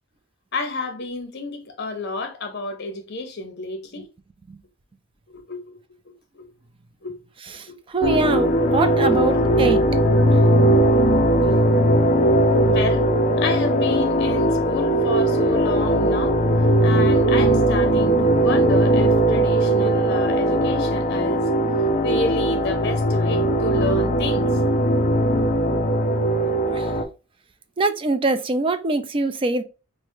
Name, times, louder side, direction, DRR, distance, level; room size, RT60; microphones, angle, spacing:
voice 1, 0.5-4.1 5.3-5.8 6.3-6.5 7.0-7.2 7.7-7.8 8.7-9.4 12.6-13.0 13.4-16.4 16.8-21.5 22.0-24.5, left 3 dB, 55° left, 0.8 m, -30 dB
voice 2, 7.9-9.8 26.8-26.9 27.8-29.6, right 2 dB, 25° right, 0.4 m, -22 dB
sound 1, 8.0-27.0, right 1 dB, 35° left, 0.4 m, -19 dB
4.8 x 2.1 x 2.7 m
head